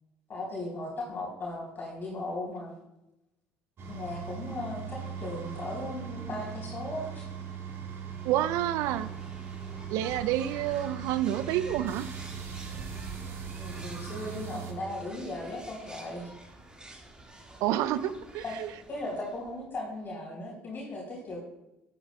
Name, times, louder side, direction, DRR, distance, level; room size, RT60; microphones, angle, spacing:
voice 1, 0.3-2.7 3.9-7.2 13.6-16.3 18.4-18.5 18.9-21.4, left 2 dB, 35° left, -4 dB, 3.6 m, -37 dB
sound 1, 3.8-14.7, right 7 dB, 45° right, 2.0 m, -39 dB
sound 2, 8.0-19.6, right 1 dB, 15° right, 2.0 m, -49 dB
voice 2, 8.2-9.1 9.9-12.1 17.6-18.7, right 12 dB, 60° right, 15 dB, 0.5 m, -29 dB
11.0 x 9.8 x 2.3 m, 0.90 s
hypercardioid pair, 60°, 6 cm